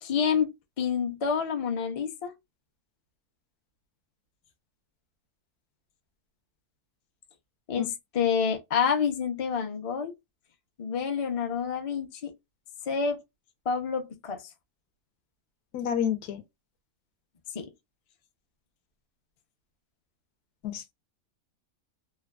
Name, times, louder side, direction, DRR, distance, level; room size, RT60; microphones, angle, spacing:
voice 1, 0.0-2.3 7.7-10.1 10.8-12.3 12.9-13.2 13.7-14.4 17.5-17.7, left 6 dB, 50° left, 0.4 m, -28 dB
voice 2, 15.7-16.4 20.6-20.9, left 9 dB, 90° left, 1.2 m, -29 dB
3.1 x 2.2 x 2.3 m
omnidirectional pair, 1.6 m